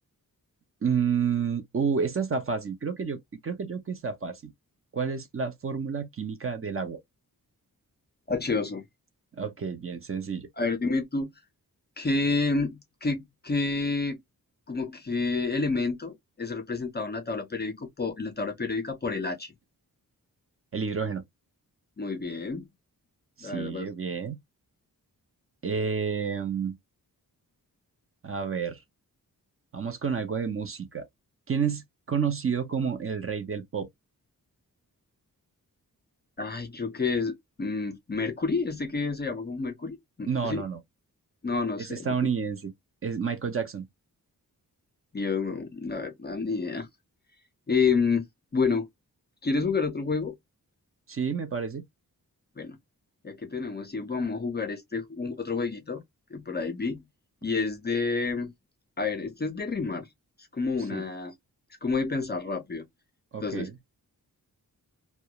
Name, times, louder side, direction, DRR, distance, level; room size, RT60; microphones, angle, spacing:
voice 1, 0.8-4.5 4.9-7.0 9.4-10.5 20.7-21.2 23.4-24.4 25.6-26.8 28.2-28.8 29.7-31.1 31.5-33.9 40.3-40.8 41.9-42.7 43.0-43.9 51.1-51.8 60.9-61.0 63.3-63.8, right 6 dB, 40° right, 0.5 m, -30 dB
voice 2, 8.3-8.8 10.6-11.3 12.0-14.2 14.7-19.5 22.0-22.7 23.4-23.9 36.4-40.6 41.4-42.2 45.1-46.9 47.7-48.2 48.5-48.9 49.4-50.4 52.6-52.8 53.2-56.0 56.3-57.0 57.4-58.5 59.0-60.1 60.5-61.3 61.8-62.9 63.4-63.7, left 4 dB, 30° left, 0.4 m, -29 dB
2.2 x 2.1 x 2.7 m
wide cardioid pair, 165°, 36 cm